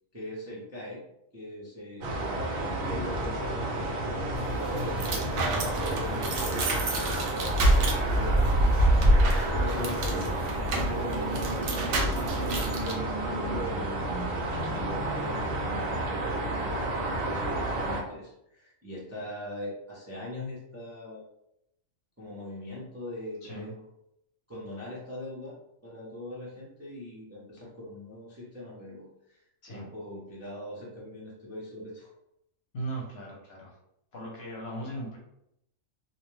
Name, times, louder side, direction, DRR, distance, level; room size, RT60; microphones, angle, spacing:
voice 1, 0.1-1.1 1.3-4.2 4.5-9.0 9.4-14.2 14.6-21.3 22.2-23.8 24.5-25.5 25.8-29.4 29.7-32.1, left 1 dB, 20° right, -7 dB, 0.4 m, -41 dB
sound 1, 2.0-18.0, right 2 dB, 90° right, 1.1 m, -31 dB
sound 2, 4.4-13.0, right 1 dB, 70° right, 0.9 m, -27 dB
voice 2, 23.4-23.7 29.6-29.9 32.7-33.8 34.1-35.2, right 1 dB, 55° left, -3 dB, 0.8 m, -38 dB
2.6 x 2.1 x 3.1 m, 0.80 s
omnidirectional pair, 1.4 m